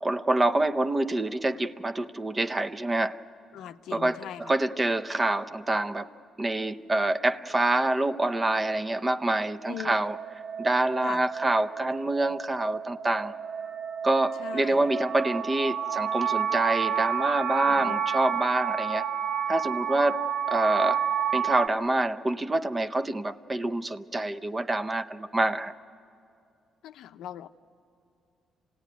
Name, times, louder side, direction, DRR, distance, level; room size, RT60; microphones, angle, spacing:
voice 1, 0.0-3.2 3.9-6.1 6.4-10.2 10.6-13.3 14.0-19.1 19.5-20.2 20.5-21.0 21.3-25.7, right 2 dB, 25° right, 11 dB, 0.6 m, -26 dB
voice 2, 3.5-4.5 9.7-10.0 11.0-11.2 14.4-14.9 17.7-18.0 26.8-27.5, left 11 dB, 85° left, 10 dB, 0.6 m, -40 dB
sound 1, 8.9-21.7, right 8 dB, 85° right, 0.8 m, -30 dB
27.0 x 17.5 x 9.3 m, 2.6 s
cardioid pair, 90°, 0 cm